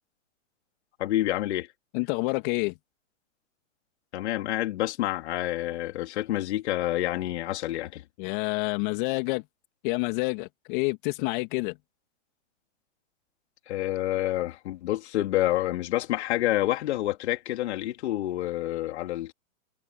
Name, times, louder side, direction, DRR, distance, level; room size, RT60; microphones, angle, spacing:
voice 1, 1.0-1.7 4.1-8.0 13.7-19.3, left 15 dB, 60° left, 4.0 m, -28 dB
voice 2, 1.9-2.7 8.2-9.4 9.8-11.8, left 26 dB, 40° left, 2.9 m, -28 dB
hypercardioid pair, 145°, 38 cm